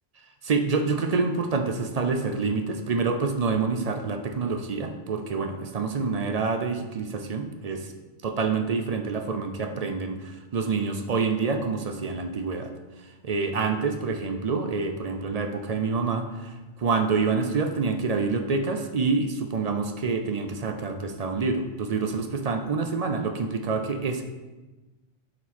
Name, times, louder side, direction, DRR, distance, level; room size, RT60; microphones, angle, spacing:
voice 1, 0.4-7.9 8.2-12.7 13.2-24.2, right 4 dB, 50° right, 5 dB, 0.5 m, -27 dB
7.1 x 4.4 x 4.3 m, 1.2 s
omnidirectional pair, 1.1 m